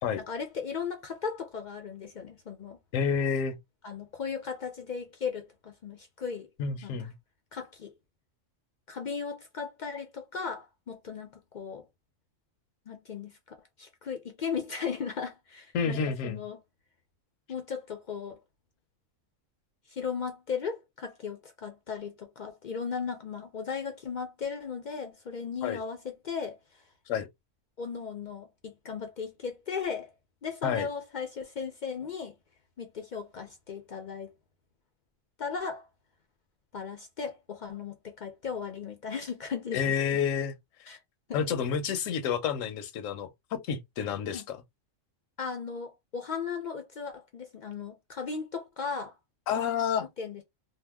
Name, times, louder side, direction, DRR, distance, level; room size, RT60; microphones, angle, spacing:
voice 1, 0.2-2.8 3.8-6.5 6.8-7.0 7.5-7.9 8.9-11.8 12.9-16.6 17.5-18.4 19.9-26.6 27.8-30.1 30.4-32.3 32.8-34.3 35.4-35.9 36.7-39.9 40.9-41.0 41.3-41.4 44.3-44.4 45.4-49.1 50.0-50.4, left 6 dB, 65° left, 0.4 m, -36 dB
voice 2, 2.9-3.6 6.6-7.1 15.7-16.4 25.6-25.8 27.1-27.3 30.6-30.9 39.7-40.5 41.3-44.6 49.5-50.1, left 7 dB, 85° left, 1.0 m, -29 dB
2.7 x 2.0 x 3.3 m
omnidirectional pair, 1.3 m